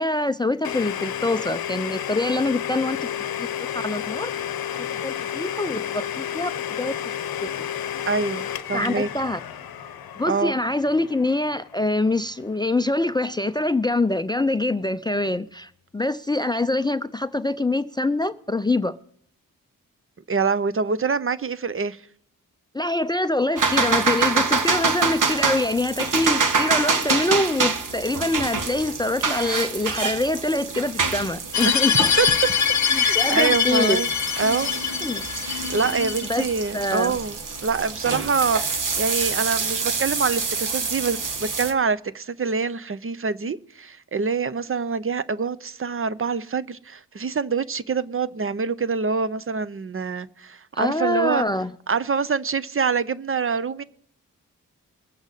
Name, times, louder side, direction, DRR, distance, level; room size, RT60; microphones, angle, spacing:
voice 1, 0.0-3.0 3.7-4.3 5.0-6.5 6.8-6.9 7.4-7.5 8.7-9.4 10.2-19.0 22.7-32.3 32.9-34.0 35.0-35.2 36.3-36.5 36.7-37.2 50.7-51.7, left 2 dB, 10° left, 0.4 m, -24 dB
Domestic sounds home sounds, 0.6-12.3, left 9 dB, 85° left, 0.8 m, -31 dB
voice 2, 8.1-9.1 10.3-10.6 20.3-22.0 31.6-31.7 32.2-32.3 32.9-34.1 34.4-34.7 35.7-51.4 51.9-53.8, right 5 dB, 35° right, 0.6 m, -25 dB
sound 1, 23.6-41.7, right 4 dB, 60° right, 1.4 m, -26 dB
sound 2, 31.5-36.5, left 7 dB, 50° left, 0.7 m, -23 dB
21.5 x 7.9 x 4.0 m
cardioid pair, 50°, 35 cm